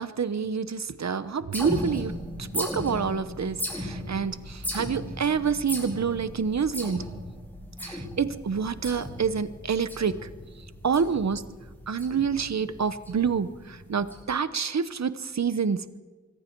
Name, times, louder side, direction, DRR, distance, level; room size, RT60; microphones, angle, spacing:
voice 1, 0.0-2.1 2.4-7.0 7.8-10.2 10.8-11.4 11.9-15.8, right 6 dB, 65° right, 13 dB, 1.0 m, -27 dB
sound 1, 1.5-14.2, equal, 5° left, 7.2 m, -37 dB
26.0 x 23.0 x 4.7 m, 1.3 s
wide cardioid pair, 105°, 29 cm